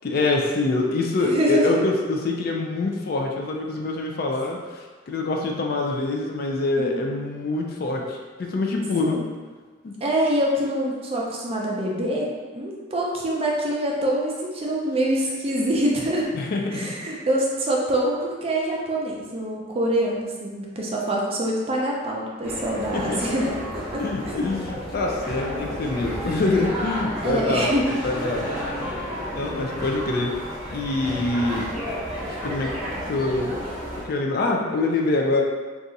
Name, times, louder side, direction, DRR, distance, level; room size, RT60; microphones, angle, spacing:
voice 1, 0.0-9.2 9.8-9.9 16.3-17.0 22.9-23.3 24.0-27.7 28.0-28.5 29.3-30.3 30.7-31.7 32.4-32.7 33.1-33.5 34.0-35.4, left 2 dB, 50° left, 1 dB, 0.3 m, -25 dB
voice 2, 1.2-1.8 6.8-7.1 9.0-9.2 10.0-16.3 16.7-24.4 27.2-28.0, right 1 dB, 30° right, -3 dB, 0.5 m, -25 dB
sound 1, 22.4-34.0, equal, ahead, 0.8 m, -31 dB
2.7 x 2.4 x 3.9 m, 1.4 s
head